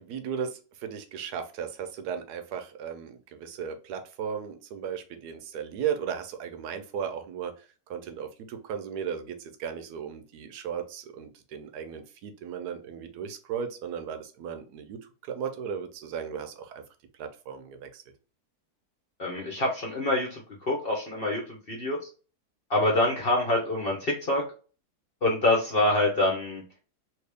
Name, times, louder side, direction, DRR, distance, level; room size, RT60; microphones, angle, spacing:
voice 1, 0.0-16.8 17.2-18.0, right 7 dB, 80° right, 1.2 m, -36 dB
voice 2, 19.2-20.4 20.7-22.0 22.7-24.4 25.2-26.6, left 1 dB, 45° left, 0.9 m, -25 dB
3.0 x 2.9 x 3.3 m
omnidirectional pair, 1.7 m